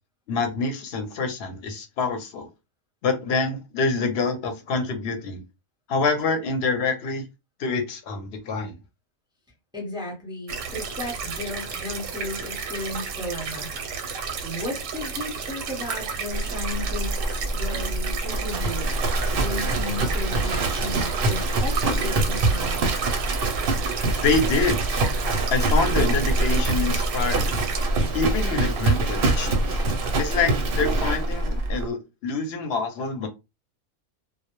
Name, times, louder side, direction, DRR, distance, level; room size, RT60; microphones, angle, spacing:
voice 1, 0.3-2.5 3.0-5.4 5.9-7.2 7.6-8.7 24.2-24.8 25.5-27.6 28.1-29.8 30.2-33.3, left 4 dB, 60° left, 0.8 m, -26 dB
voice 2, 9.7-18.9 19.3-22.9, left 1 dB, 5° right, 0.5 m, -35 dB
sound 1, 10.5-27.8, right 5 dB, 90° right, 1.0 m, -33 dB
Livestock farm animals working animals, 16.3-31.8, right 2 dB, 60° right, 0.6 m, -24 dB
2.2 x 2.0 x 2.9 m
omnidirectional pair, 1.3 m